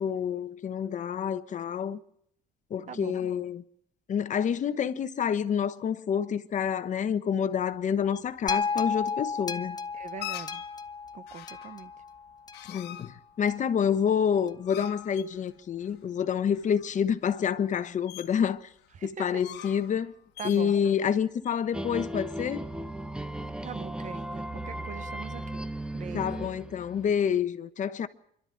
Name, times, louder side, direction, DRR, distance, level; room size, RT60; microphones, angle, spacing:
voice 1, 0.0-2.0 2.7-3.6 4.1-9.8 12.7-18.7 19.0-20.1 20.4-22.6 26.1-28.1, left 8 dB, 45° left, 1.1 m, -28 dB
voice 2, 2.9-3.2 9.9-10.6 11.1-11.9 18.9-19.4 20.4-20.7 23.6-25.7 25.9-26.3, right 7 dB, 45° right, 1.0 m, -42 dB
sound 1, 7.7-22.6, left 14 dB, 80° left, 1.4 m, -46 dB
sound 2, 8.5-12.8 13.5-13.6, left 5 dB, 25° left, 0.9 m, -33 dB
sound 3, 21.7-27.3, right 1 dB, 5° right, 1.0 m, -36 dB
25.0 x 12.0 x 9.9 m
cardioid pair, 110°, 17 cm